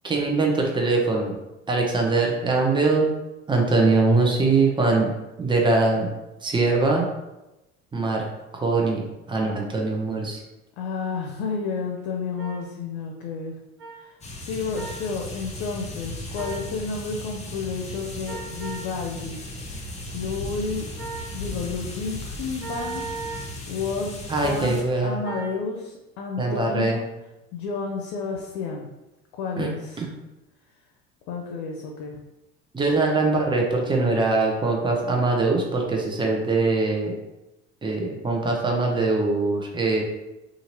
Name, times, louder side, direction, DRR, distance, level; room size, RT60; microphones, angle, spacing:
voice 1, 0.0-1.3 1.7-3.1 3.5-5.1 5.4-6.1 6.4-7.1 7.9-8.2 8.5-9.0 9.3-10.4 24.3-25.2 26.4-27.0 29.6-29.7 30.0-30.1 32.7-37.1 37.8-40.0, right 3 dB, 15° right, 0 dB, 0.7 m, -22 dB
voice 2, 10.8-13.6 13.9-20.8 21.3-23.0 23.7-27.0 27.5-28.9 29.3-30.0 31.3-32.2, left 4 dB, 70° left, 1 dB, 0.6 m, -31 dB
sound 1, 12.4-12.5 13.8-13.9 14.7-15.0 16.3-16.6 18.2-18.9 21.0-21.3 22.6-23.5 25.2-25.5, right 4 dB, 85° right, 0.9 m, -35 dB
sound 2, 14.2-24.8, left 1 dB, 20° left, 0.7 m, -36 dB
2.8 x 2.5 x 3.0 m, 0.99 s
hypercardioid pair, 70°, 31 cm